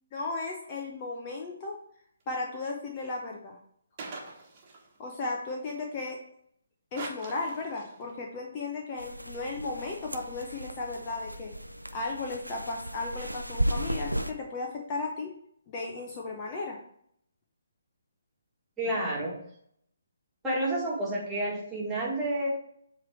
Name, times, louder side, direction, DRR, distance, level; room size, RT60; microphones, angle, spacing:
voice 1, 0.1-1.8 2.3-3.6 5.0-6.2 6.9-11.5 11.9-15.3 15.7-16.8, left 3 dB, 25° left, 0 dB, 0.8 m, -35 dB
sound 1, 4.0-5.0 7.0-8.1, right 3 dB, 30° right, 1.4 m, -42 dB
sound 2, 9.0-14.3, right 1 dB, 85° right, 0.5 m, -35 dB
voice 2, 18.8-19.3 20.4-22.5, right 1 dB, 10° right, -6 dB, 1.9 m, -30 dB
7.6 x 3.3 x 4.9 m, 0.69 s
figure-of-eight pair, 140°, 0 cm